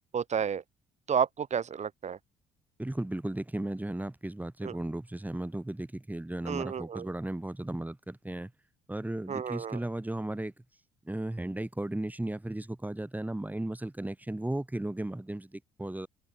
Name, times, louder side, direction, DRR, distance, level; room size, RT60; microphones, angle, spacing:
voice 1, 0.1-0.6 1.1-2.2 4.6-4.7 6.5-7.0 9.3-9.8, right 7 dB, 45° right, 1.2 m, -31 dB
voice 2, 2.8-8.5 8.9-10.5 11.0-16.1, right 1 dB, 10° right, 6.5 m, -35 dB
supercardioid pair, 60°, 16 cm